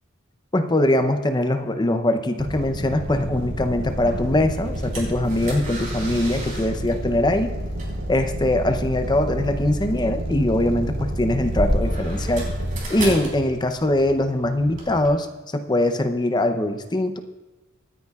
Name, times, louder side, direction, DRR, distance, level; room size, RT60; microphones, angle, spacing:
voice 1, 0.5-7.5 8.1-12.5 12.9-15.3 15.5-17.2, left 1 dB, 20° left, 7 dB, 0.7 m, -22 dB
sound 1, 2.4-12.8, equal, 75° right, 3.9 m, -29 dB
sound 2, 3.9-15.1, equal, 40° right, 3.7 m, -33 dB
25.5 x 9.7 x 2.4 m, 1.2 s
head